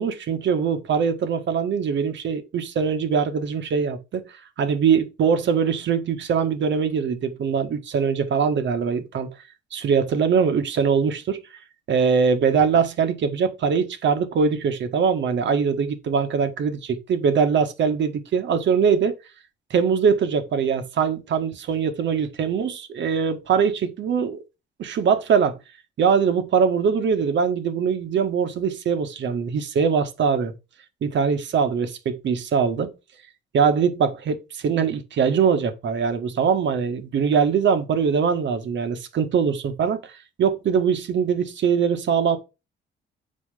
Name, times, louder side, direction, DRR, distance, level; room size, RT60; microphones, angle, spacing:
voice 1, 0.0-4.2 4.6-9.3 9.7-11.6 11.9-19.2 19.7-24.4 24.8-25.6 26.0-30.5 31.0-32.9 33.5-40.1 40.4-42.4, right 6 dB, 65° right, 1.7 m, -22 dB
7.9 x 4.6 x 5.0 m
cardioid pair, 90°, 20 cm